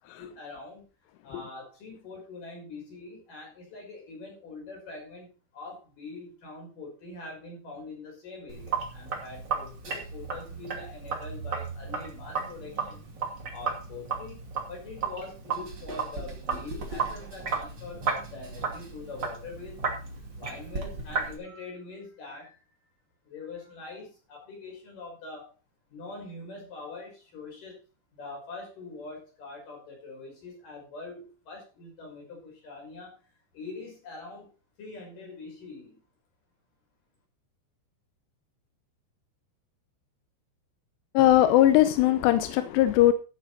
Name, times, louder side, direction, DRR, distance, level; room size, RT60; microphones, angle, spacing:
voice 1, 0.2-0.8 1.2-5.3 5.5-13.0 13.5-14.4 14.7-19.8 20.4-22.6 23.3-25.5 25.9-27.8 28.1-33.2 33.5-34.5 34.8-36.0, left 3 dB, 45° left, 0 dB, 7.1 m, -43 dB
Sink (filling or washing), 8.5-21.4, right 5 dB, 35° right, 2.1 m, -34 dB
voice 2, 41.1-43.1, left 13 dB, 80° left, 10 dB, 2.5 m, -20 dB
13.5 x 8.9 x 4.3 m, 0.33 s
omnidirectional pair, 5.6 m